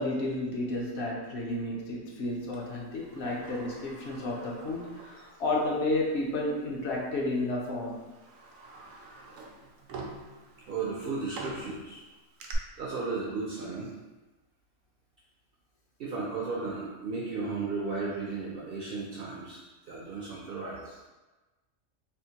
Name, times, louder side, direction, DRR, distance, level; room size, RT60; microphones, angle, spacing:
voice 1, 0.0-8.0, left 2 dB, 60° left, -3 dB, 0.8 m, -31 dB
Sliding door, 2.5-5.8 6.1-6.2 7.2-7.4 7.8-12.5, right 3 dB, 80° right, 1.0 m, -47 dB
voice 2, 10.7-12.0 12.8-13.9 16.0-21.0, right 4 dB, 65° right, -4 dB, 0.6 m, -35 dB
3.5 x 2.5 x 2.8 m, 1.2 s
omnidirectional pair, 1.4 m